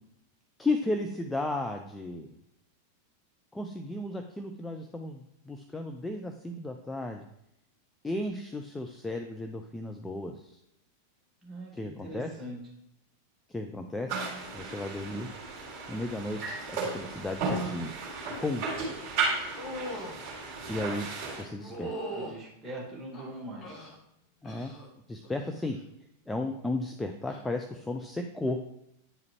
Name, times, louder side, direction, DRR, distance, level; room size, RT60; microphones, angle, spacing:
voice 1, 0.6-2.4 3.5-7.2 8.0-10.6 11.7-12.3 13.5-14.2 14.5-15.3 15.9-18.0 18.4-18.6 20.7-21.1 21.4-21.9 24.4-24.7 25.1-25.8 26.3-28.6, left 2 dB, 10° left, 4 dB, 0.5 m, -34 dB
voice 2, 11.4-12.6 22.1-23.7, right 1 dB, 15° right, -4 dB, 2.0 m, -42 dB
sound 1, 14.1-21.4, right 4 dB, 35° right, 2.6 m, -34 dB
sound 2, 19.6-20.2 21.6-22.4 23.1-24.0 24.4-24.9 25.2-25.7 27.2-27.4, equal, 30° left, 1.5 m, -39 dB
9.2 x 4.8 x 3.1 m, 0.79 s
figure-of-eight pair, 90°, 0 cm